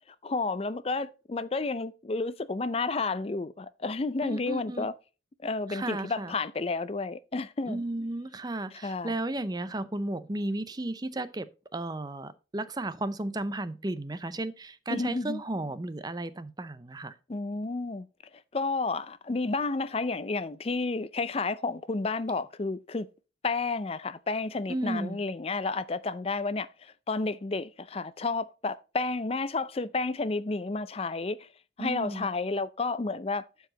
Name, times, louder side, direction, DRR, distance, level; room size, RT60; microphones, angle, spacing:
voice 1, 0.2-4.9 5.4-7.8 8.7-9.2 14.9-15.4 17.3-18.1 18.5-23.1 23.4-31.5 31.8-33.4, left 3 dB, 30° left, 0.4 m, -31 dB
voice 2, 4.2-4.9 5.7-6.3 7.7-11.5 11.7-17.1 24.7-25.2 31.8-32.3, right 2 dB, 20° right, 0.5 m, -34 dB
12.0 x 4.7 x 3.9 m
head